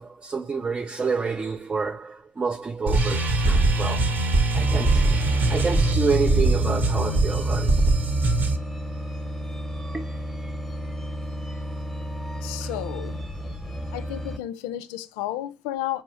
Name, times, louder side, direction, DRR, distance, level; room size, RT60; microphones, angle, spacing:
voice 1, 0.0-4.0 4.5-5.2 5.5-7.8 9.9-10.2 12.6-12.7, right 4 dB, 25° right, 0.4 m, -28 dB
sound 1, 2.9-8.6, right 2 dB, 45° right, 0.9 m, -21 dB
sound 2, 4.6-14.4, equal, 5° left, 0.9 m, -33 dB
voice 2, 12.4-13.2 13.9-16.0, left 13 dB, 70° left, 0.4 m, -32 dB
4.3 x 3.2 x 3.0 m
hypercardioid pair, 55°, 4 cm